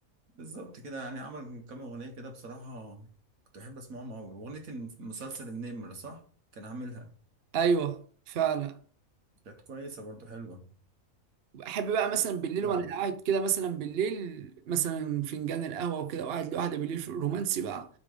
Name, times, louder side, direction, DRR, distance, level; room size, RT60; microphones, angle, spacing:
voice 1, 0.4-3.1 3.5-6.2 6.5-7.1 9.5-10.7 12.6-12.9, right 2 dB, 80° right, 1.8 m, -42 dB
voice 2, 7.5-8.8 11.5-17.9, right 7 dB, 55° right, 0.8 m, -30 dB
8.5 x 3.7 x 5.0 m
omnidirectional pair, 1.5 m